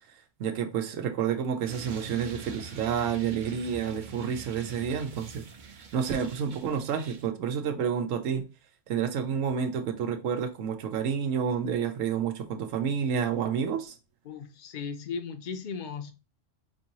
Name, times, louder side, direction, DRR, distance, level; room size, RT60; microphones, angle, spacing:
voice 1, 0.4-5.5 5.9-8.5 8.9-14.0, right 7 dB, 85° right, 1.1 m, -29 dB
sound 1, 1.7-7.3, right 4 dB, 45° right, 0.7 m, -44 dB
voice 2, 14.2-16.1, left 6 dB, 50° left, 0.6 m, -36 dB
5.3 x 2.7 x 2.9 m
omnidirectional pair, 1.3 m